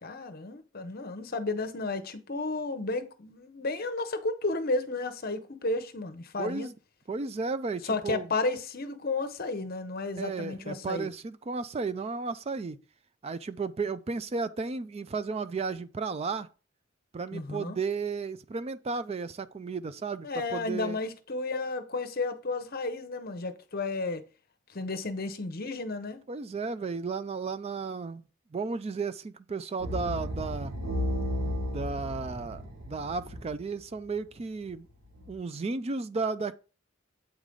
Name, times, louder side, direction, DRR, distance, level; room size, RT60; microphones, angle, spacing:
voice 1, 0.0-6.7 7.8-11.1 17.3-17.8 20.2-24.2 24.7-26.2, left 3 dB, 45° left, 0.8 m, -32 dB
voice 2, 6.4-6.7 7.1-8.3 10.2-12.8 13.2-16.5 17.1-21.0 26.3-28.2 28.5-30.7 31.7-34.9 35.3-36.6, right 4 dB, 30° right, 0.4 m, -34 dB
sound 1, 29.8-34.1 34.6-35.3, left 1 dB, 75° right, 1.6 m, -34 dB
8.3 x 4.9 x 3.8 m
head